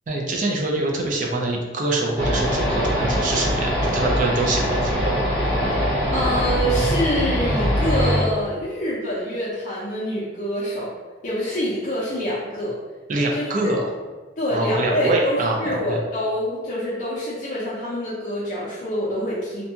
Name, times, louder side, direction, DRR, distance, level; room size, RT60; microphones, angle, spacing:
voice 1, 0.1-5.2 13.1-13.9 14.5-16.0, right 2 dB, 40° right, 0 dB, 0.4 m, -24 dB
sound 1, 2.2-8.2, equal, 20° right, 1.0 m, -22 dB
voice 2, 6.1-10.9 11.2-12.8 13.3-13.7 14.4-19.6, equal, 40° left, -9 dB, 0.5 m, -26 dB
2.6 x 2.2 x 2.7 m, 1.3 s
head